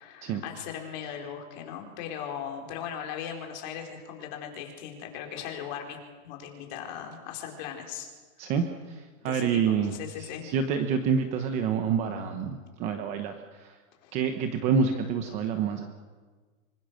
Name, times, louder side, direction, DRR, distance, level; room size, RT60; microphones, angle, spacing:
voice 1, 0.0-8.1 8.4-8.5 9.2-10.5 14.0-14.1, left 8 dB, 35° left, 3 dB, 4.5 m, -38 dB
voice 2, 8.4-13.7 14.1-15.9, right 6 dB, 15° right, 6 dB, 1.0 m, -28 dB
26.0 x 25.0 x 6.5 m, 1.4 s
supercardioid pair, 175°, 41 cm